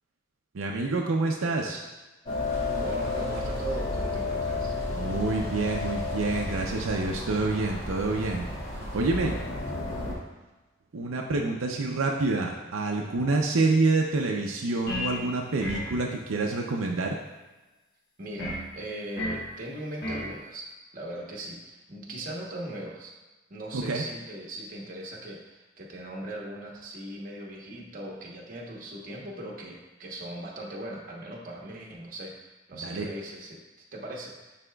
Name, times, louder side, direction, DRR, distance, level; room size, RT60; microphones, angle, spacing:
voice 1, 0.5-1.8 4.9-8.5 8.8-9.4 10.9-17.2 23.7-24.0 32.8-33.1, right 3 dB, 80° right, 1 dB, 0.5 m, -27 dB
sound 1, 2.3-10.1, left 2 dB, 30° left, 1.9 m, -32 dB
voice 2, 2.7-4.7 18.2-20.7 20.9-23.1 23.5-34.6, right 1 dB, 45° right, -2 dB, 1.0 m, -39 dB
sound 2, 14.9-15.2 15.6-16.0 18.4-18.7 19.2-19.5 20.0-20.3, left 1 dB, 50° left, 1.1 m, -32 dB
9.8 x 4.2 x 2.3 m, 1.1 s
head